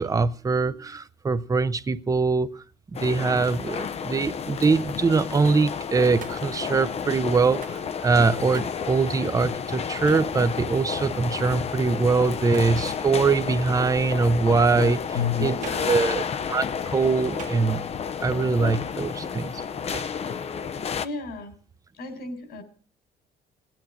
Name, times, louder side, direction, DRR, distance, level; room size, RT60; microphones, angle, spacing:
voice 1, 0.0-2.6 2.9-15.0 15.4-15.6 15.9-17.8 18.2-19.6, right 4 dB, 20° right, 0.8 m, -23 dB
sound 1, 2.9-21.1, left 6 dB, 40° left, 0.8 m, -31 dB
Hands, 6.2-6.6 7.6-7.9 8.5-8.8 10.1-10.3 12.5-12.8 15.6-16.0 17.4-18.0 19.9-20.3, right 8 dB, 50° right, 1.7 m, -42 dB
voice 2, 14.7-15.9 21.0-21.5 21.9-22.6, left 5 dB, 70° left, 4.3 m, -31 dB
17.5 x 9.2 x 7.5 m
cardioid pair, 110°, 17 cm